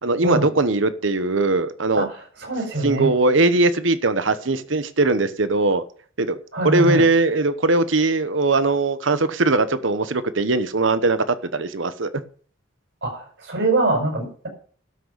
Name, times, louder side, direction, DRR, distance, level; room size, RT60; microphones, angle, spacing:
voice 1, 0.0-2.1 2.8-5.8 6.2-6.4 6.6-12.1, right 2 dB, 80° right, 1.1 m, -20 dB
voice 2, 1.9-3.1 6.5-7.0 13.0-14.5, right 2 dB, 65° right, 5.8 m, -24 dB
12.5 x 6.4 x 6.9 m
head